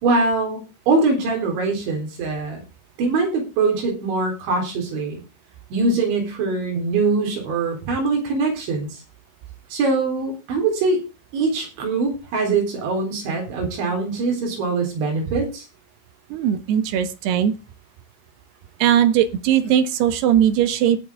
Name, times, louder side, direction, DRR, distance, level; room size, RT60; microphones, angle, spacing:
voice 1, 0.0-2.6 3.0-5.2 5.7-9.0 9.7-11.0 11.3-15.7, right 3 dB, 85° right, 2 dB, 6.2 m, -22 dB
voice 2, 16.3-17.5 18.8-21.0, right 10 dB, 70° right, 11 dB, 3.1 m, -19 dB
18.0 x 7.7 x 3.6 m, 0.29 s
omnidirectional pair, 5.1 m